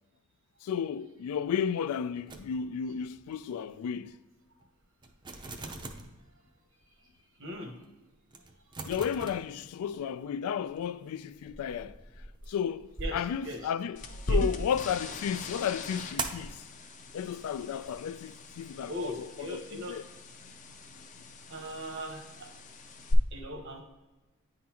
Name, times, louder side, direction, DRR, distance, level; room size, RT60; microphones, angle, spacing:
voice 1, 0.6-4.2 8.9-12.0 12.5-16.6 17.1-20.0, left 8 dB, 90° left, 0.3 m, -33 dB
sound 1, 2.3-3.0 3.3-3.5 4.0-4.1 4.6-4.7 5.0-6.2 6.8-6.9 7.5-7.6 7.8-7.9 8.3-10.1 10.5-14.1 16.2-16.5 17.2-18.0, right 3 dB, 20° right, 0.5 m, -42 dB
voice 2, 7.4-7.7 13.0-13.7 14.3-14.4 18.9-20.0 21.1-21.2 21.5-22.5 23.3-23.8, equal, 65° right, 1.0 m, -39 dB
sound 2, 14.0-23.1, left 1 dB, 35° left, 0.5 m, -38 dB
9.3 x 3.9 x 2.9 m
head